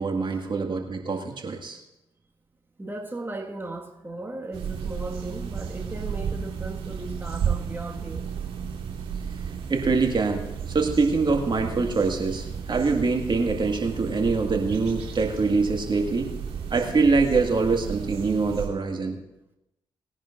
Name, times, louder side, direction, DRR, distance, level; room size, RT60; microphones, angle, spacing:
voice 1, 0.0-1.8 9.7-16.3 16.7-19.2, right 4 dB, 45° right, 3 dB, 2.0 m, -24 dB
voice 2, 2.8-8.3, right 2 dB, 20° right, 1 dB, 1.8 m, -37 dB
sound 1, 4.5-18.7, right 7 dB, 80° right, 2.9 m, -33 dB
20.5 x 10.5 x 2.6 m, 0.87 s
hypercardioid pair, 40°, 11 cm